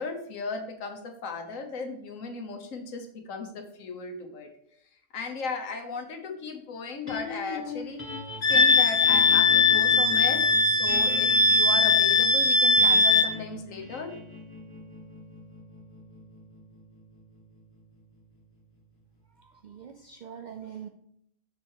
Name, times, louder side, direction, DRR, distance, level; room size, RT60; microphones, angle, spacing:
voice 1, 0.0-4.5 5.1-8.0 8.5-14.2, left 4 dB, 80° left, 5 dB, 1.4 m, -36 dB
sound 1, 7.1-19.4, left 2 dB, 10° left, 1.0 m, -40 dB
Wind instrument woodwind instrument, 8.4-13.3, left 3 dB, 50° left, 0.8 m, -20 dB
voice 2, 19.6-20.9, right 8 dB, 70° right, 5 dB, 0.4 m, -42 dB
6.6 x 4.8 x 4.5 m, 0.70 s
omnidirectional pair, 1.3 m